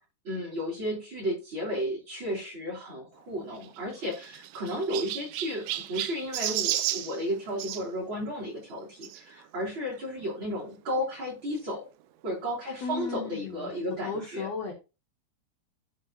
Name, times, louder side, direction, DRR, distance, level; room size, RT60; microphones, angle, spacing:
voice 1, 0.2-11.8 12.2-14.5, equal, 30° right, -2 dB, 3.2 m, -33 dB
Chirp tweet, 3.5-7.8 9.0-9.2 9.9-10.0 10.2-10.3 11.6-11.7, right 13 dB, 85° right, 2.9 m, -33 dB
voice 2, 12.8-14.7, left 4 dB, 75° left, 0 dB, 1.5 m, -35 dB
13.5 x 4.8 x 2.8 m, 0.29 s
omnidirectional pair, 5.0 m